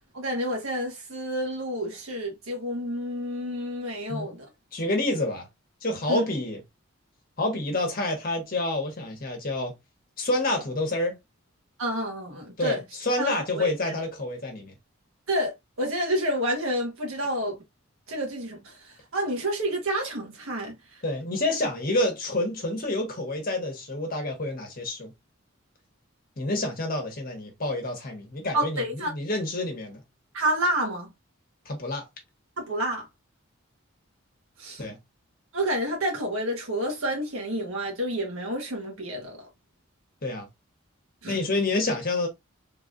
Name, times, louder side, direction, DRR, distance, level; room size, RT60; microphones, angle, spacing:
voice 1, 0.1-4.5 6.1-6.2 11.8-12.8 13.2-13.9 15.3-17.6 18.1-21.0 28.5-29.1 30.3-31.1 32.6-33.1 34.6-34.8 35.5-39.5 41.2-41.4, right 1 dB, 80° right, 1.4 m, -29 dB
voice 2, 4.7-5.5 5.8-6.6 7.4-9.7 10.2-11.2 12.6-14.7 21.0-25.1 26.4-30.0 31.6-32.1 34.8-35.0 40.2-40.5 41.3-42.3, left 2 dB, 45° left, 1.2 m, -28 dB
3.5 x 3.2 x 2.5 m
head